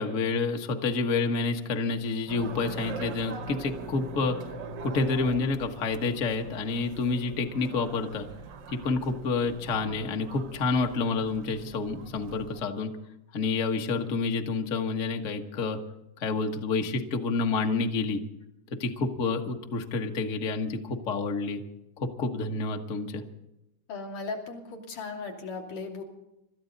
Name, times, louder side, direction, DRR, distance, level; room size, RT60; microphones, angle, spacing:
voice 1, 0.0-4.4 4.8-8.3 8.7-12.9 13.3-15.8 16.2-18.2 18.7-21.6 22.0-23.2, left 4 dB, 65° left, 4 dB, 0.7 m, -29 dB
sound 1, 2.3-12.6, right 4 dB, 80° right, 1.0 m, -42 dB
voice 2, 23.9-26.0, left 4 dB, 80° left, 0 dB, 4.1 m, -37 dB
25.0 x 13.5 x 4.0 m, 0.88 s
omnidirectional pair, 3.6 m